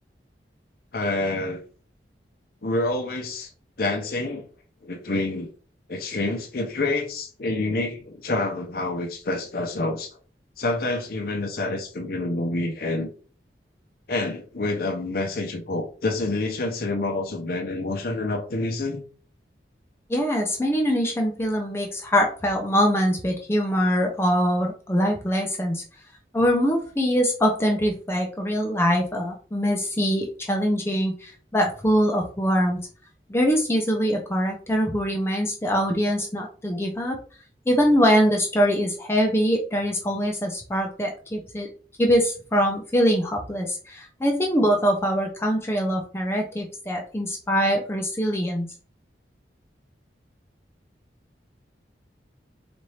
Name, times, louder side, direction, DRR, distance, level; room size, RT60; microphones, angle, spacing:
voice 1, 0.9-1.6 2.6-3.5 3.8-4.5 4.8-5.5 5.9-10.1 10.6-13.1 14.1-19.0, left 2 dB, 55° left, 0.7 m, -27 dB
voice 2, 20.1-25.8 26.3-32.8 33.3-37.2 37.7-41.7 42.0-48.7, equal, 15° left, 0.6 m, -23 dB
4.2 x 2.6 x 3.2 m
head